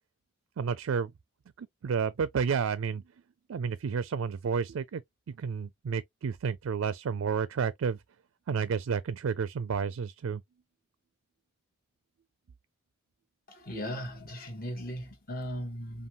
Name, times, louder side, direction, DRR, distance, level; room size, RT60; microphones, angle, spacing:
voice 1, 0.6-1.1 1.6-3.0 3.5-5.0 5.3-8.0 8.5-10.4, right 6 dB, 80° right, 0.4 m, -31 dB
voice 2, 13.5-16.1, equal, 45° left, 1.4 m, -37 dB
5.4 x 2.3 x 3.0 m
head